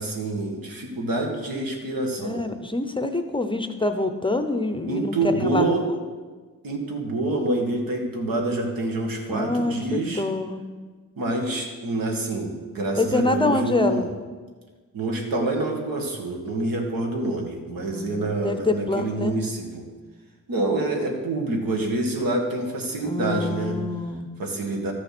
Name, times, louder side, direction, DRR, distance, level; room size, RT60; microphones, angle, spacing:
voice 1, 0.0-2.4 4.9-5.8 6.6-10.2 11.2-14.1 14.9-19.9 20.5-23.8 24.4-24.9, right 2 dB, 85° right, 2 dB, 2.0 m, -27 dB
voice 2, 2.2-6.0 9.3-10.6 13.0-14.1 17.8-19.3 23.0-24.3, left 2 dB, 15° left, 7 dB, 0.6 m, -26 dB
13.0 x 6.8 x 6.0 m, 1.4 s
wide cardioid pair, 160°, 34 cm